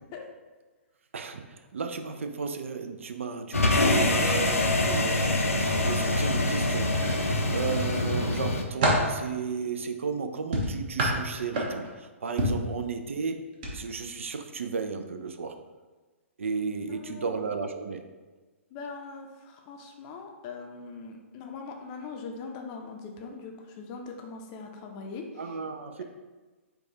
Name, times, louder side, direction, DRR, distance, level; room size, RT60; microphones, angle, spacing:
voice 1, 1.1-7.0 7.5-15.6 16.4-18.0 25.4-26.0, right 5 dB, 65° right, 7 dB, 0.4 m, -34 dB
sound 1, 3.5-8.6, left 2 dB, 80° left, 0.5 m, -25 dB
sound 2, 7.0-7.8 8.3-9.2 10.5-12.0 12.4-12.7 13.5-13.7 14.1-14.3, right 1 dB, 40° right, 0.9 m, -27 dB
voice 2, 18.7-25.3, left 4 dB, 30° left, 2 dB, 0.5 m, -41 dB
4.6 x 2.3 x 4.0 m, 1.3 s
figure-of-eight pair, 120°, 7 cm